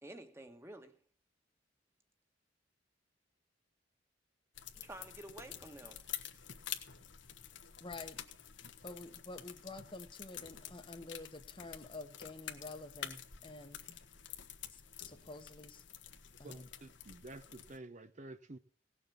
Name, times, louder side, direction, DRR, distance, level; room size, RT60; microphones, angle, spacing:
voice 1, 0.0-1.0 4.7-6.0, right 1 dB, 15° right, 1.5 m, -50 dB
sound 1, 4.5-17.8, left 10 dB, 80° left, 1.5 m, -49 dB
voice 2, 7.8-8.2 8.8-13.8 14.7-15.8 16.4-16.7, left 2 dB, 30° left, 1.1 m, -49 dB
voice 3, 16.4-18.6, right 2 dB, 40° right, 0.7 m, -50 dB
18.0 x 7.1 x 7.1 m
head